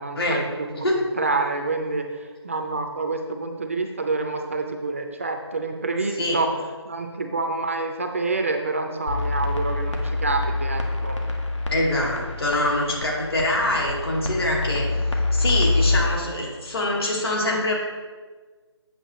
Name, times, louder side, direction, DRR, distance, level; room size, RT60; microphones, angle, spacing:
voice 1, 0.0-6.5 6.9-11.2, right 3 dB, 30° right, 4 dB, 0.5 m, -27 dB
sound 1, 9.1-16.0, left 2 dB, 90° left, 1.4 m, -26 dB
voice 2, 11.7-14.9 15.3-17.7, left 1 dB, 55° left, -2 dB, 2.3 m, -24 dB
8.4 x 6.5 x 3.0 m, 1.4 s
figure-of-eight pair, 160°, 15 cm